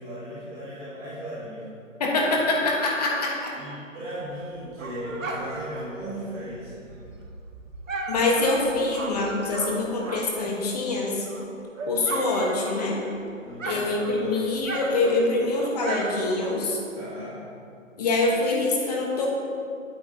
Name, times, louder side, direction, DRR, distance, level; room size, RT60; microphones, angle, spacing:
voice 1, 0.0-1.8 3.5-6.9 13.4-13.8 14.2-14.5 16.9-17.4, equal, 15° right, -11 dB, 2.0 m, -37 dB
voice 2, 2.0-3.5 8.1-11.3 11.9-13.0 13.6-16.8 18.0-19.3, left 2 dB, 30° left, -1 dB, 1.2 m, -25 dB
Dog, 4.2-10.5 10.9-13.2 13.5-16.9, right 2 dB, 75° right, 1.3 m, -36 dB
9.0 x 8.1 x 2.7 m, 2.5 s
figure-of-eight pair, 150°, 39 cm